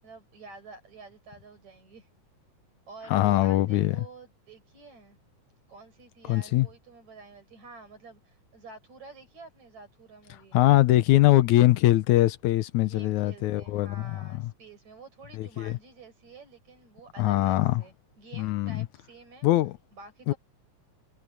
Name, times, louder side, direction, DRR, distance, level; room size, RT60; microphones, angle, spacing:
voice 1, 0.0-2.1 2.9-5.2 5.7-10.6 12.9-19.5 19.9-20.4, right 4 dB, 65° right, 8.5 m, -49 dB
voice 2, 3.1-4.0 6.3-6.7 10.5-14.2 15.4-15.8 17.2-17.8 18.4-18.9 19.4-19.7 20.3-20.4, left 16 dB, 80° left, 2.1 m, -22 dB
omnidirectional pair, 3.5 m